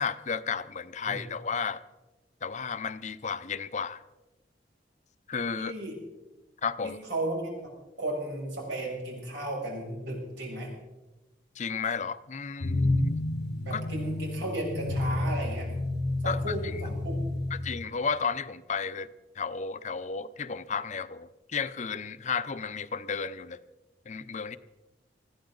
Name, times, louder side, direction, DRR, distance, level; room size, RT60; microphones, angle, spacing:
voice 1, 0.0-1.8 2.4-4.0 5.3-5.7 6.6-7.0 11.6-13.2 13.7-13.8 16.2-16.5 17.5-19.1 19.4-23.6 24.1-24.6, left 5 dB, 40° left, 14 dB, 0.6 m, -33 dB
voice 2, 5.6-6.0 6.8-7.5 8.0-10.7 13.7-15.7 16.2-17.3, right 1 dB, 90° right, -2 dB, 7.0 m, -34 dB
sound 1, 12.6-17.8, left 2 dB, 70° left, 0.9 m, -30 dB
20.5 x 15.0 x 3.9 m, 1.1 s
head